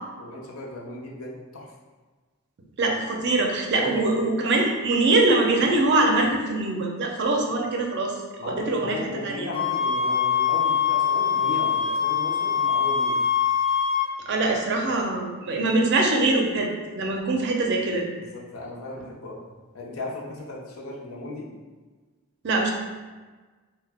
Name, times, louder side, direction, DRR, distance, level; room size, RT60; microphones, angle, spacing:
voice 1, 0.2-1.7 3.7-4.0 8.4-13.2 18.2-19.4 19.7-21.5, left 2 dB, 75° left, -3 dB, 0.6 m, -36 dB
voice 2, 2.8-8.1 8.4-9.5 14.3-18.0 22.4-22.7, right 2 dB, 50° right, 0 dB, 0.4 m, -23 dB
sound 1, 9.5-14.1, left 7 dB, 25° left, 0.4 m, -23 dB
2.7 x 2.1 x 3.3 m, 1.3 s
head